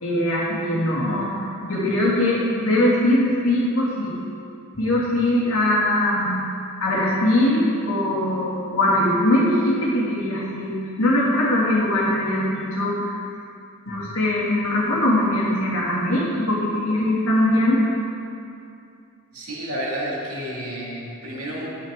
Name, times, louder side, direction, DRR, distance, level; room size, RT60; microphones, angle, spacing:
voice 1, 0.0-4.2 4.7-6.4 6.8-13.2 13.9-17.9, left 1 dB, 65° left, -6 dB, 2.4 m, -21 dB
voice 2, 19.3-21.7, right 1 dB, 80° right, -4 dB, 2.2 m, -30 dB
10.5 x 9.0 x 3.7 m, 2.6 s
head